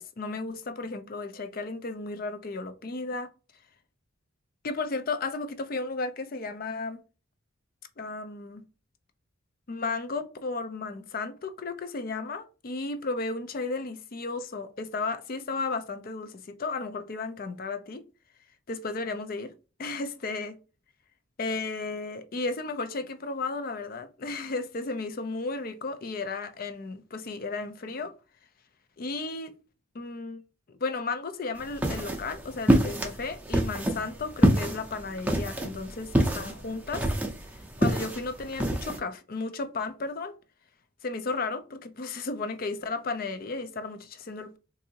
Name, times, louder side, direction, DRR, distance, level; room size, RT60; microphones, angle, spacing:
voice 1, 0.0-3.3 4.6-7.0 8.0-8.6 9.7-18.1 18.7-19.5 19.8-20.6 21.4-28.1 29.0-29.5 29.9-30.4 30.7-37.1 37.8-40.4 41.0-44.6, left 3 dB, 45° left, 0.4 m, -34 dB
sound 1, 31.6-39.0, right 1 dB, 5° right, 0.6 m, -27 dB
3.8 x 2.6 x 2.8 m
head